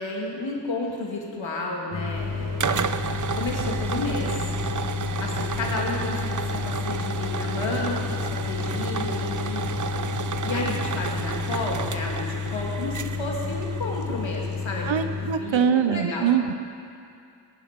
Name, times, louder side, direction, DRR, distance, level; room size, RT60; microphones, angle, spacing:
voice 1, 0.0-3.0 3.3-4.5 5.2-9.7 10.4-16.4, left 2 dB, 85° left, -2 dB, 2.7 m, -32 dB
sound 1, 1.9-15.3, left 5 dB, 35° left, 1.5 m, -31 dB
sound 2, 2.2-14.7, right 6 dB, 45° right, 0.7 m, -32 dB
voice 2, 14.9-16.5, right 7 dB, 85° right, 10 dB, 0.8 m, -23 dB
20.5 x 11.0 x 5.3 m, 2.4 s
cardioid pair, 40°, 45 cm